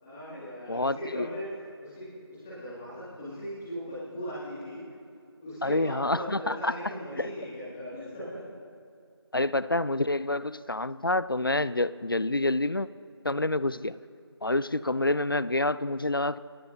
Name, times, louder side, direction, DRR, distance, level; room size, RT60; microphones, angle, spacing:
voice 1, 0.0-1.4 1.8-4.8 5.4-8.6, equal, 5° left, -11 dB, 2.2 m, -38 dB
voice 2, 0.7-1.3 5.6-6.8 7.2-7.3 9.3-12.9 13.2-14.0 14.4-16.4, left 2 dB, 55° left, 17 dB, 0.5 m, -27 dB
29.5 x 17.5 x 2.7 m, 2.4 s
figure-of-eight pair, 175°, 14 cm